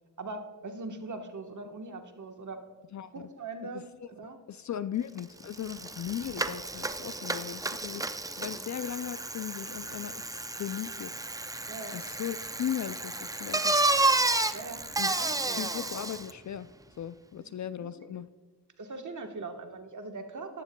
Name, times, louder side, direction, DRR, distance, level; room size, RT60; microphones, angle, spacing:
voice 1, 0.2-2.6 3.1-4.4 8.5-8.6 11.7-12.0 14.5-15.6 17.4-18.2 18.8-20.6, right 3 dB, 45° right, 6 dB, 1.3 m, -41 dB
voice 2, 2.9-3.3 3.7-4.1 4.5-11.1 11.9-13.9 15.0-15.2 15.5-16.7 17.0-18.3, left 10 dB, 45° left, 15 dB, 0.4 m, -37 dB
Bicycle, 5.2-5.3 5.5-16.3, right 2 dB, 10° right, 0.5 m, -31 dB
12.5 x 10.5 x 2.2 m, 1.3 s
supercardioid pair, 45°, 41 cm